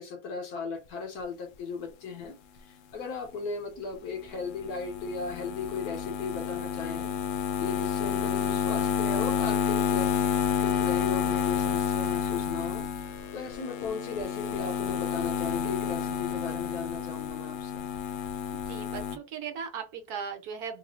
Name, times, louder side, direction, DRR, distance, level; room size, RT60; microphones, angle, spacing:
voice 1, 0.0-2.4 2.6-7.1 7.6-10.1 10.6-12.9 13.3-17.9, left 5 dB, 65° left, 1.3 m, -36 dB
sound 1, 4.3-19.2, left 7 dB, 90° left, 0.6 m, -30 dB
voice 2, 18.5-20.8, right 6 dB, 65° right, 1.1 m, -38 dB
3.8 x 2.6 x 3.0 m
omnidirectional pair, 1.9 m